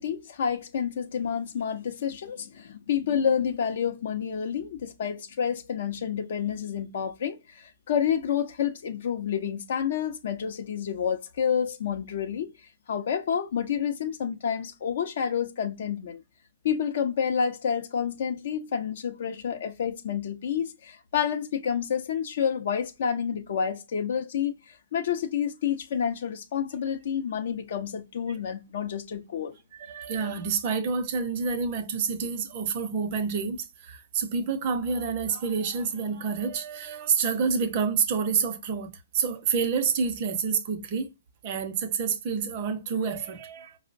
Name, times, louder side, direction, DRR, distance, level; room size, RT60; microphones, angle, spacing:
voice 1, 0.0-12.5 12.9-16.2 16.6-29.6, left 8 dB, 60° left, 0.5 m, -29 dB
voice 2, 29.7-41.1 41.4-43.8, right 5 dB, 40° right, 0.6 m, -28 dB
4.9 x 2.0 x 2.5 m
hypercardioid pair, 130°, 0 cm